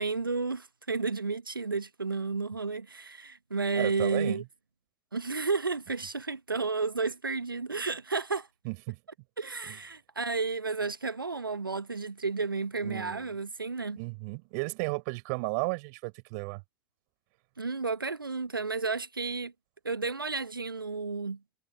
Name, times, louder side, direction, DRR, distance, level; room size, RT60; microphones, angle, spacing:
voice 1, 0.0-4.4 5.1-8.5 9.4-14.0 17.6-19.5 19.8-21.4, right 4 dB, 90° right, 1.0 m, -32 dB
voice 2, 3.7-4.4 8.6-9.0 9.7-9.8 12.8-13.3 14.0-16.6, right 30 dB, 55° right, 6.1 m, -34 dB
figure-of-eight pair, 75°, 11 cm